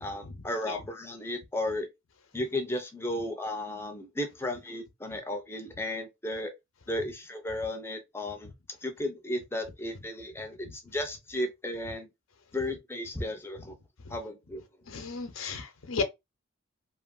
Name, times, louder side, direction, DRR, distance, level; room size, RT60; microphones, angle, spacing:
voice 1, 0.0-1.9 2.3-6.5 6.9-8.5 8.8-12.1 12.5-13.8 14.1-14.6, left 1 dB, 10° left, 0.5 m, -34 dB
voice 2, 14.9-16.0, left 4 dB, 85° left, 0.7 m, -34 dB
2.9 x 2.6 x 2.4 m
head